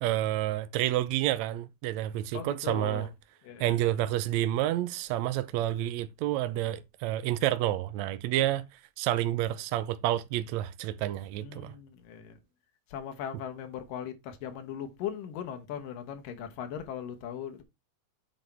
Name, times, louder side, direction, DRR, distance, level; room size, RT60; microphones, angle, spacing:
voice 1, 0.0-3.1 3.6-8.6 9.0-11.7, right 13 dB, 80° right, 1.6 m, -29 dB
voice 2, 2.3-3.1 3.4-3.9 11.4-12.4 12.9-17.6, left 9 dB, 80° left, 2.8 m, -39 dB
8.1 x 5.2 x 4.3 m
omnidirectional pair, 3.9 m